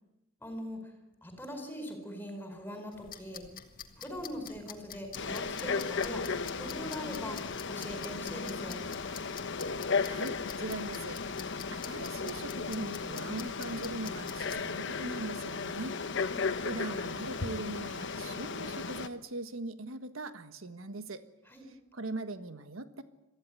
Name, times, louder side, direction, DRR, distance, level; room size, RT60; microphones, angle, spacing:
voice 1, 0.4-0.9 1.2-3.4 4.0-6.3 6.6-7.4 7.7-8.8 16.3-16.7 21.5-21.7, equal, 10° left, 5 dB, 4.9 m, -41 dB
sound 1, 2.9-14.7, left 8 dB, 45° left, 1.8 m, -49 dB
Frog, 5.1-19.1, left 5 dB, 60° left, 1.1 m, -35 dB
voice 2, 10.0-16.0 16.6-21.2 21.7-23.0, right 2 dB, 85° right, 9 dB, 1.5 m, -40 dB
sound 2, 12.4-18.5, right 1 dB, 35° right, 7.6 m, -58 dB
23.5 x 15.0 x 9.6 m, 0.98 s
head